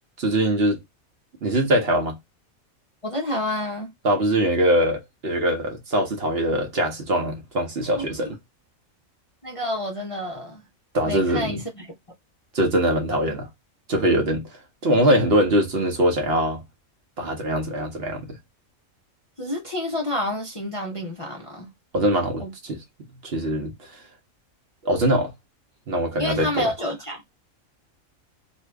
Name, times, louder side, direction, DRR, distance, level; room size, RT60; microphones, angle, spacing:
voice 1, 0.2-0.8 1.4-2.2 4.0-8.4 10.9-11.6 12.5-13.5 13.9-14.4 14.8-16.6 17.2-18.3 21.9-22.8 23.2-24.0 24.8-25.3 25.9-26.7, right 1 dB, 50° right, 1.0 m, -22 dB
voice 2, 3.0-3.9 7.9-8.1 9.4-10.6 11.0-11.9 19.4-21.7 22.4-22.5 26.2-27.2, left 1 dB, 35° left, 0.6 m, -29 dB
2.8 x 2.7 x 3.3 m
omnidirectional pair, 1.4 m